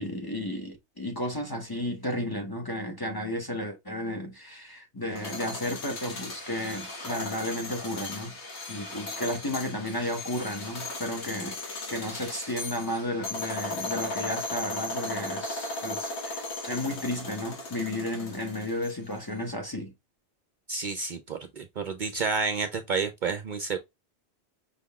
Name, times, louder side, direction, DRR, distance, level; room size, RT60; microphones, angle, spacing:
voice 1, 0.0-8.4 8.7-19.9, left 1 dB, 20° left, 0.8 m, -33 dB
sound 1, 5.0-19.2, left 2 dB, 80° left, 1.4 m, -37 dB
voice 2, 20.7-23.8, right 5 dB, 55° right, 0.6 m, -30 dB
5.3 x 3.7 x 2.3 m
omnidirectional pair, 1.1 m